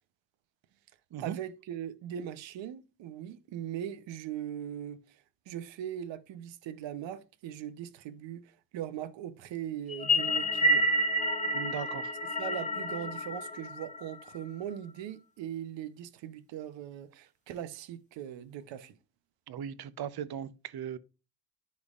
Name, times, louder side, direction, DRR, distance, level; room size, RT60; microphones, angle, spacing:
voice 1, 1.2-10.9 12.4-19.0, right 10 dB, 85° right, 0.8 m, -40 dB
sound 1, 9.9-14.4, equal, 15° left, 0.9 m, -29 dB
voice 2, 11.5-12.1 19.5-21.0, right 9 dB, 60° right, 0.8 m, -38 dB
10.5 x 5.4 x 2.4 m
cardioid pair, 80°, 43 cm